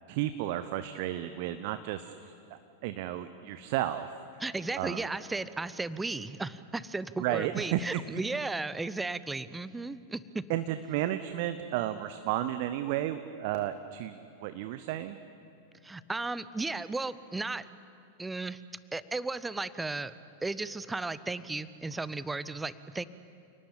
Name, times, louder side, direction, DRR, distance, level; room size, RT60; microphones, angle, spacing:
voice 1, 0.1-2.3 2.8-4.1 4.8-5.0 7.2-8.0 10.5-15.2, right 13 dB, 50° right, 11 dB, 0.9 m, -32 dB
voice 2, 4.4-10.4 15.8-17.7 18.2-18.6 18.9-20.1 20.4-23.1, right 3 dB, 10° right, 16 dB, 0.8 m, -35 dB
29.0 x 19.0 x 8.8 m, 2.7 s
figure-of-eight pair, 90°, 0 cm